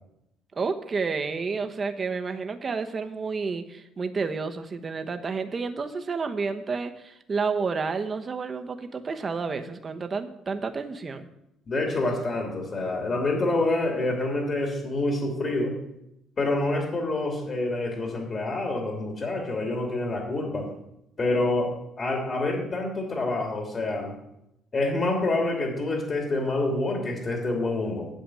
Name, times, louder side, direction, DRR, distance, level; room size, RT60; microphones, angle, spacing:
voice 1, 0.5-11.3, right 4 dB, 30° right, 7 dB, 1.0 m, -30 dB
voice 2, 11.7-15.7 16.4-20.7 21.2-24.1 24.7-28.1, left 2 dB, 35° left, 1 dB, 2.8 m, -27 dB
9.0 x 7.0 x 8.5 m, 0.84 s
cardioid pair, 125°, 0 cm